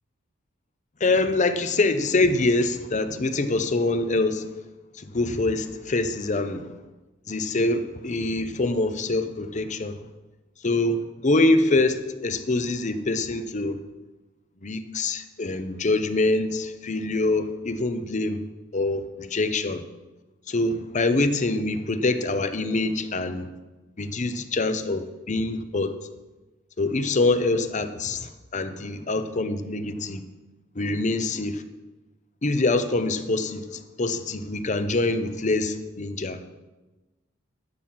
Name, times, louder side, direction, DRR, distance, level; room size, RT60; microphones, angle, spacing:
voice 1, 1.0-4.5 5.0-6.7 7.3-10.0 10.6-13.8 14.6-18.4 18.7-19.8 20.5-23.5 24.0-25.9 26.8-30.2 30.8-31.6 32.4-36.4, left 2 dB, 35° left, 10 dB, 0.7 m, -25 dB
11.5 x 5.9 x 7.6 m, 1.1 s
head